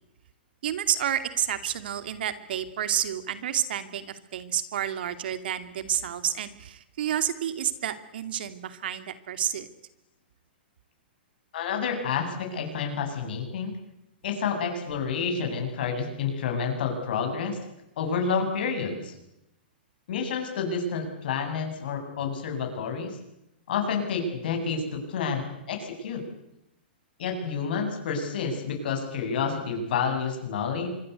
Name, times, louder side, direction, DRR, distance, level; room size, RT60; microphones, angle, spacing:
voice 1, 0.6-9.7, right 10 dB, 65° right, 10 dB, 2.5 m, -30 dB
voice 2, 11.5-13.7 14.2-17.6 18.0-19.1 20.1-23.2 23.7-26.2 27.2-30.9, left 5 dB, 65° left, 4 dB, 7.8 m, -29 dB
25.5 x 22.0 x 8.3 m, 0.86 s
hypercardioid pair, 135°, 6 cm